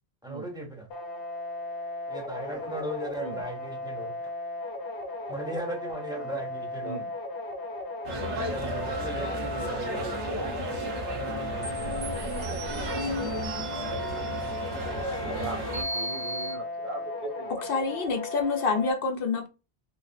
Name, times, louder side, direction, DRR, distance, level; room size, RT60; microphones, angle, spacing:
voice 1, 0.2-0.9 2.1-4.2 5.3-7.0 8.3-10.3 11.0-12.2, right 1 dB, 5° right, 0.6 m, -37 dB
sound 1, 0.9-18.9, left 2 dB, 80° left, 1.1 m, -36 dB
sound 2, 8.0-15.8, right 1 dB, 85° right, 1.3 m, -34 dB
sound 3, 11.6-16.6, right 1 dB, 35° right, 1.2 m, -38 dB
voice 2, 15.2-18.0, right 3 dB, 55° right, 0.7 m, -39 dB
voice 3, 17.7-19.5, left 4 dB, 65° left, 0.7 m, -27 dB
3.9 x 3.0 x 2.6 m
omnidirectional pair, 1.1 m